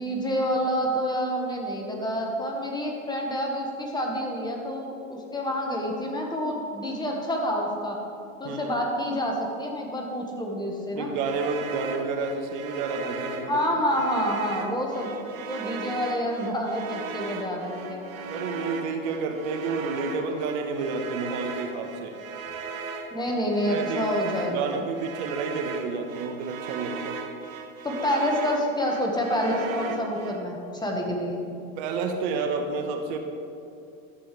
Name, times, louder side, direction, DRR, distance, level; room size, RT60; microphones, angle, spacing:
voice 1, 0.0-8.0 8.4-11.1 13.5-15.1 15.5-18.1 23.1-24.8 27.8-31.5, equal, 10° left, 0 dB, 1.4 m, -28 dB
voice 2, 10.9-13.8 18.3-22.2 23.6-24.1 24.4-27.2 31.8-33.2, right 4 dB, 55° right, 5 dB, 1.1 m, -30 dB
sound 1, 11.1-30.4, right 4 dB, 90° right, 1.1 m, -37 dB
12.5 x 7.8 x 3.3 m, 2.5 s
hypercardioid pair, 110°, 39 cm